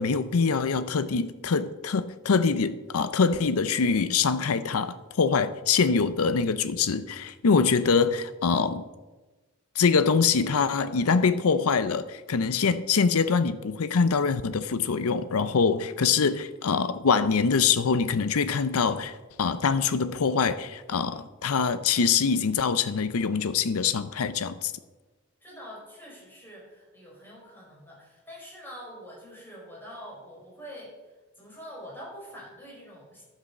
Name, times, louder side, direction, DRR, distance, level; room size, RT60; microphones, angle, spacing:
voice 1, 0.0-8.8 9.8-24.7, left 5 dB, 80° left, 12 dB, 0.6 m, -24 dB
voice 2, 25.4-31.0 31.3-33.2, equal, 10° left, -4 dB, 4.9 m, -45 dB
11.5 x 7.6 x 6.6 m, 1.2 s
head